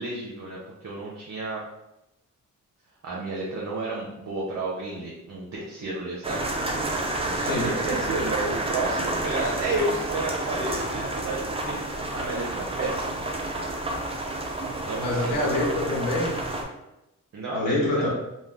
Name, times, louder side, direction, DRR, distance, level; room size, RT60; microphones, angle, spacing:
voice 1, 0.0-1.6 3.0-6.7 7.2-13.2 14.9-15.4 17.3-18.1, right 2 dB, 60° right, -4 dB, 0.6 m, -32 dB
sound 1, 6.2-16.6, right 2 dB, 20° right, 0.4 m, -30 dB
voice 2, 15.0-16.4 17.5-18.1, left 1 dB, 90° left, -3 dB, 0.7 m, -26 dB
2.4 x 2.2 x 3.2 m, 0.91 s
cardioid pair, 75°, 33 cm